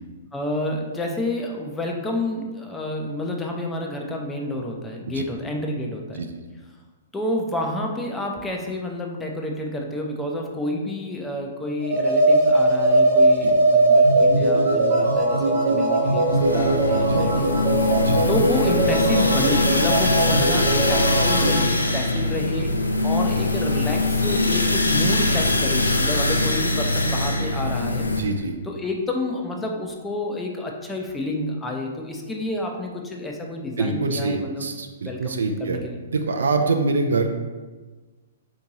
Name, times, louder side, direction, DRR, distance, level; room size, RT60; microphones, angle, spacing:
voice 1, 0.3-6.2 7.1-17.5 17.8-17.9 18.3-22.7 23.0-28.1 28.6-34.7 35.0-36.0, left 1 dB, 10° left, 0 dB, 0.5 m, -29 dB
sound 1, 11.8-21.6, right 2 dB, 50° right, 0.9 m, -19 dB
sound 2, 16.3-28.2, left 2 dB, 80° left, 0.3 m, -22 dB
voice 2, 16.9-17.5 18.0-18.3 28.1-28.6 33.8-35.8 36.1-37.3, right 3 dB, 65° right, 5 dB, 0.4 m, -25 dB
4.4 x 2.7 x 2.8 m, 1.3 s
figure-of-eight pair, 110°, 0 cm